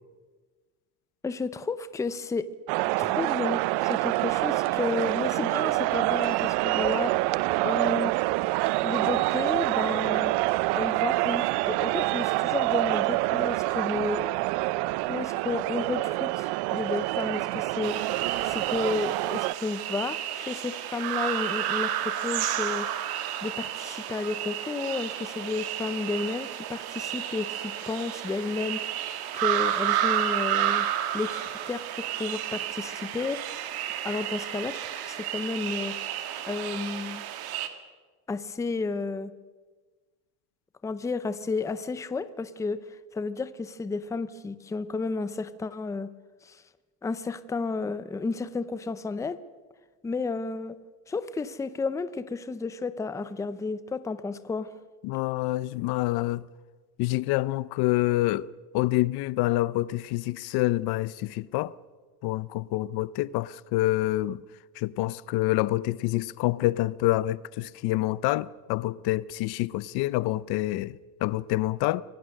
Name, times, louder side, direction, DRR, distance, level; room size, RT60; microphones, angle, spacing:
voice 1, 1.2-2.5 3.0-7.1 7.6-8.1 8.8-10.3 10.7-14.2 15.1-18.0 18.4-22.9 23.4-28.8 29.3-30.9 31.1-33.4 34.0-35.9 36.5-37.2 38.3-39.3 40.8-42.8 43.1-46.1 46.4-46.6 47.0-49.4 50.0-50.8 51.1-54.7, left 4 dB, 10° left, 0.5 m, -32 dB
sound 1, 2.7-19.5, right 20 dB, 85° right, 0.5 m, -26 dB
sound 2, 17.8-37.7, right 11 dB, 65° right, 2.0 m, -31 dB
voice 2, 55.0-56.4 57.0-58.5 58.7-61.7 62.2-64.4 64.8-72.0, left 17 dB, 70° left, 0.7 m, -27 dB
24.5 x 17.5 x 6.5 m
cardioid pair, 165°, 39 cm